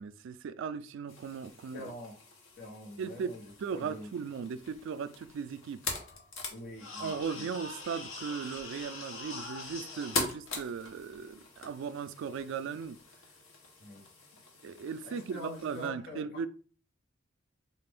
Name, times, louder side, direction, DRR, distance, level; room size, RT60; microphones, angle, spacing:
voice 1, 0.0-1.8 3.0-5.8 7.0-13.0 14.6-16.5, right 6 dB, 65° right, 0.3 m, -37 dB
sound 1, 1.1-15.9, left 3 dB, 75° left, 1.0 m, -42 dB
voice 2, 1.7-2.2 2.6-3.4 3.7-4.1 6.5-7.5 13.8-14.0 15.0-16.3, left 1 dB, 55° left, 1.0 m, -45 dB
4.0 x 2.5 x 3.5 m
head